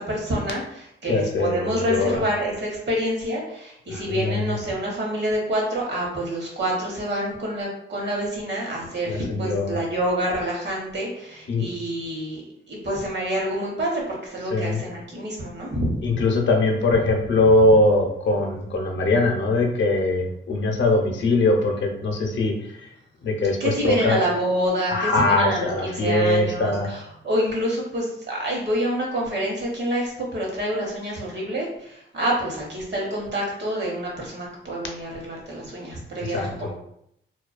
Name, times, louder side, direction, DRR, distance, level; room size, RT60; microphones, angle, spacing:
voice 1, 0.0-12.4 12.7-16.1 23.6-36.7, equal, 60° right, -2 dB, 1.0 m, -27 dB
voice 2, 1.1-2.2 3.9-4.4 9.1-9.8 11.5-11.7 14.5-14.8 16.0-22.9 23.2-24.2 24.9-27.0 36.3-36.7, left 2 dB, 65° left, 2 dB, 0.6 m, -21 dB
2.3 x 2.2 x 2.4 m, 0.74 s
cardioid pair, 80°, 21 cm